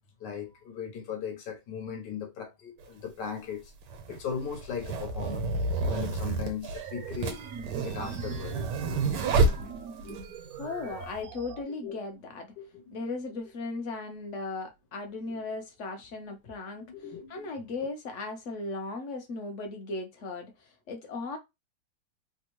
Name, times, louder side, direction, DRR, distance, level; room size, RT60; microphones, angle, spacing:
voice 1, 0.2-3.7 4.1-5.5 5.8-7.5 7.8-9.0 10.0-10.2 10.4-10.5 10.8-11.1 11.8-12.0 12.6-13.0 15.2-15.4 16.8-17.5, left 7 dB, 85° left, 1.6 m, -38 dB
sound 1, 2.8-2.9 3.8-10.2, right 3 dB, 85° right, 1.4 m, -29 dB
sound 2, 6.6-11.6, right 6 dB, 70° right, 0.9 m, -42 dB
voice 2, 10.6-12.5 12.9-16.8 17.3-20.5 20.9-21.4, left 3 dB, 55° left, 0.9 m, -37 dB
3.4 x 2.1 x 3.0 m
omnidirectional pair, 1.8 m